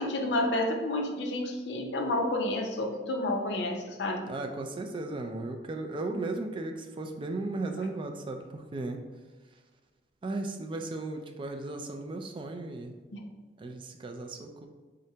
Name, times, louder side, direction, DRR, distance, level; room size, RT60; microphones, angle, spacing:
voice 1, 0.0-4.3 13.1-13.2, left 1 dB, 75° left, 2 dB, 0.6 m, -30 dB
voice 2, 4.3-9.0 10.2-12.9 13.6-14.7, right 2 dB, 30° right, 4 dB, 0.3 m, -36 dB
3.8 x 3.2 x 2.8 m, 1.3 s
head